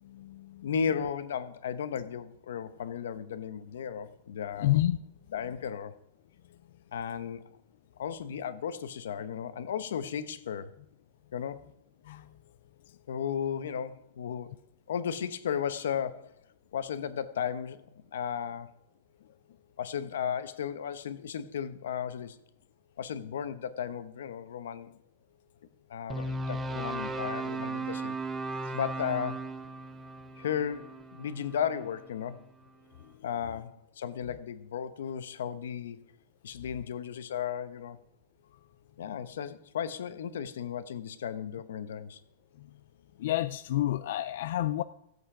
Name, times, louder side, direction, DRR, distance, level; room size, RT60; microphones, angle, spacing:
voice 1, 0.0-0.7 4.6-5.0 12.0-12.3 43.2-44.8, left 14 dB, 50° left, 0.3 m, -29 dB
voice 2, 0.6-4.8 5.3-5.9 6.9-7.5 8.0-10.8 11.3-11.6 13.1-14.5 14.9-16.4 16.7-17.9 18.1-18.7 19.8-22.4 23.0-24.9 25.9-28.2 28.7-29.6 30.4-32.5 33.2-36.0 36.4-38.0 39.0-42.2, left 8 dB, 85° left, 0.9 m, -35 dB
sound 1, 26.1-32.3, right 2 dB, 10° right, 0.6 m, -37 dB
15.5 x 8.2 x 4.9 m
supercardioid pair, 180°, 0 cm